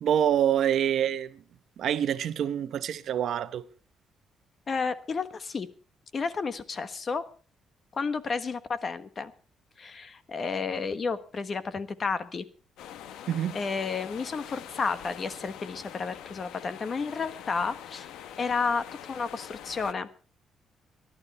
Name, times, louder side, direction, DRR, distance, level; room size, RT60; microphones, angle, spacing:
voice 1, 0.0-1.4 1.8-3.6 13.3-13.6, right 10 dB, 70° right, 1.0 m, -26 dB
voice 2, 4.7-5.7 6.1-7.3 7.9-9.3 9.8-12.4 13.5-18.1 18.4-20.1, left 5 dB, 40° left, 1.3 m, -31 dB
sound 1, 12.8-19.9, left 10 dB, 85° left, 0.9 m, -44 dB
19.0 x 12.0 x 4.2 m
cardioid pair, 90°, 0 cm